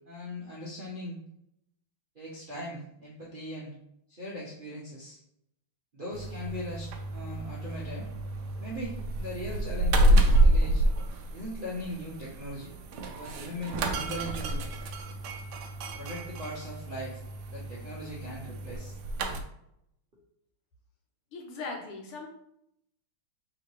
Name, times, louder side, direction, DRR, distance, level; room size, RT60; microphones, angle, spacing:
voice 1, 0.1-1.2 2.1-3.7 4.1-5.2 5.9-8.1 8.6-10.8 11.3-12.7 13.1-14.6 15.9-17.2 17.5-19.0, equal, 50° right, -8 dB, 0.6 m, -39 dB
sound 1, 6.1-19.4, right 1 dB, 85° right, 0.9 m, -28 dB
voice 2, 21.3-22.3, left 3 dB, 80° left, 0 dB, 1.8 m, -39 dB
3.7 x 2.8 x 4.6 m, 0.76 s
omnidirectional pair, 2.4 m